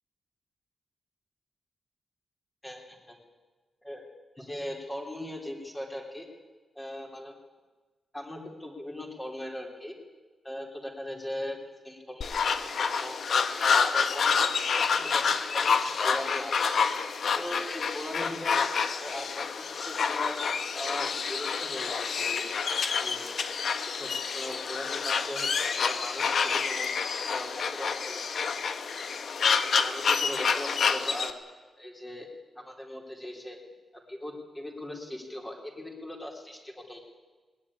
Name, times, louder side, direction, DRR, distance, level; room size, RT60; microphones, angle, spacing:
voice 1, 2.6-3.2 3.8-4.0 4.4-6.3 6.7-7.3 8.1-9.9 10.4-11.6 11.8-13.2 13.6-16.7 17.3-18.6 19.0-20.4 20.7-22.5 22.9-23.4 23.8-26.9 27.3-28.2 29.8-31.3 31.8-32.3 32.5-33.6 33.9-37.0, left 1 dB, 15° left, 0 dB, 3.3 m, -39 dB
sound 1, 12.2-31.3, left 5 dB, 60° left, 1.4 m, -28 dB
20.0 x 19.5 x 9.8 m, 1.3 s
wide cardioid pair, 155°, 0 cm